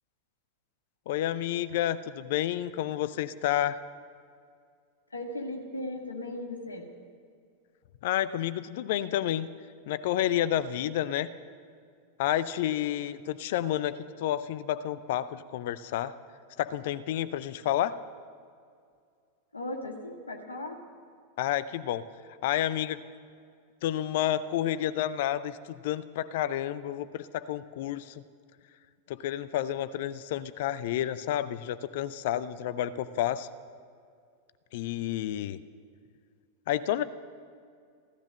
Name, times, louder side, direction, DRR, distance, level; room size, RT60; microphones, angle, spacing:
voice 1, 1.1-3.8 8.0-9.5 9.9-11.3 12.2-16.1 16.6-18.0 21.4-22.1 22.4-23.0 23.8-25.6 25.8-28.2 29.1-33.5 34.7-35.6 36.7-37.0, left 12 dB, 50° left, 15 dB, 0.6 m, -30 dB
voice 2, 5.1-6.9 19.5-20.8, left 1 dB, 80° left, 3 dB, 1.9 m, -37 dB
15.5 x 13.5 x 6.4 m, 2.2 s
figure-of-eight pair, 90°, 0 cm